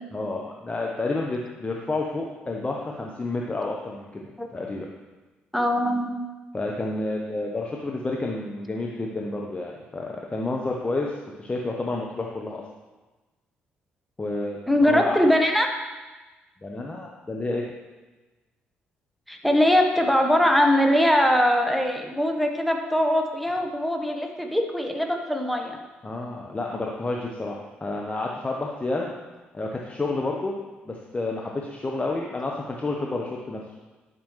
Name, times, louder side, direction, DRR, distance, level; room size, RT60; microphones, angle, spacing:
voice 1, 0.1-4.2 4.5-4.9 6.5-12.6 14.2-15.2 16.6-17.6 26.0-29.1 29.5-30.5 30.9-33.6, left 2 dB, 25° left, -1 dB, 0.9 m, -30 dB
voice 2, 5.5-6.2 14.7-15.7 19.3-25.8, equal, ahead, 3 dB, 1.2 m, -21 dB
10.5 x 6.1 x 3.1 m, 1.2 s
figure-of-eight pair, 45°, 5 cm